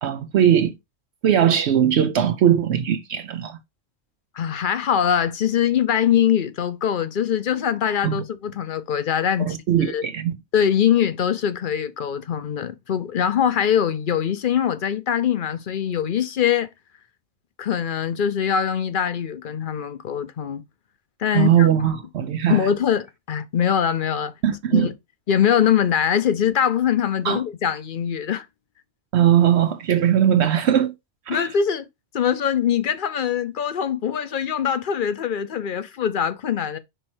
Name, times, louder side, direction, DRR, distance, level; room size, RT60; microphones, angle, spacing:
voice 1, 0.0-0.7 1.2-3.6 8.0-8.2 9.4-10.4 21.3-22.6 24.4-24.9 27.2-27.4 29.1-30.9 31.3-31.5, right 9 dB, 75° right, 0.9 m, -19 dB
voice 2, 4.3-10.0 10.5-16.7 17.6-20.6 21.2-21.7 22.5-24.3 24.7-24.9 25.3-28.5 31.3-31.8 32.1-36.8, left 8 dB, 55° left, 0.8 m, -22 dB
5.5 x 4.3 x 4.3 m
omnidirectional pair, 1.2 m